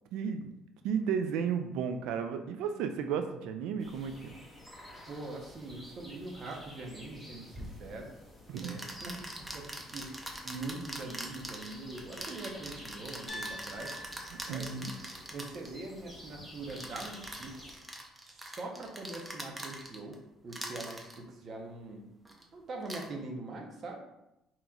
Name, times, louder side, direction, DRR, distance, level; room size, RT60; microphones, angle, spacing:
voice 1, 0.1-0.5 0.8-4.3 8.5-8.7 14.5-14.9, right 7 dB, 80° right, 7 dB, 0.3 m, -33 dB
sound 1, 3.8-17.8, left 1 dB, 5° left, 1.1 m, -52 dB
voice 2, 5.1-8.1 8.6-13.9 14.4-14.8 15.3-17.7 18.2-20.2 20.4-22.0 22.5-24.0, right 2 dB, 45° right, 0 dB, 0.8 m, -43 dB
sound 2, 7.5-7.7 8.6-15.7 16.7-20.1 20.5-21.2 22.2-22.4 22.8-23.1, right 1 dB, 15° right, 0.7 m, -43 dB
Piano, 13.3-17.3, equal, 35° left, 1.4 m, -48 dB
5.1 x 3.0 x 2.4 m, 0.88 s
cardioid pair, 105°, 0 cm